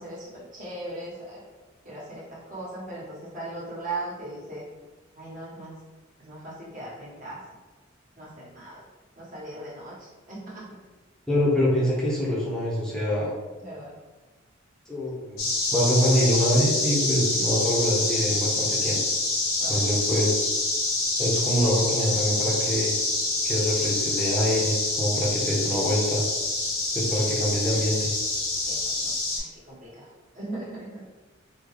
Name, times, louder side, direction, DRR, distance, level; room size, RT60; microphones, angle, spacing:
voice 1, 0.0-1.4 1.8-4.6 5.1-5.8 6.2-7.4 8.2-8.8 9.2-10.8 13.6-13.9 19.6-20.0 27.1-27.2 28.7-30.1 30.3-31.0, right 2 dB, 40° right, -7 dB, 1.2 m, -38 dB
voice 2, 11.3-13.3 14.9-15.5 15.7-19.0 19.7-20.5 21.2-22.9 23.4-26.2 26.9-28.1, equal, 5° left, -6 dB, 0.8 m, -25 dB
sound 1, 15.4-29.4, left 2 dB, 70° left, 1.0 m, -26 dB
3.7 x 2.3 x 3.2 m, 1.2 s
head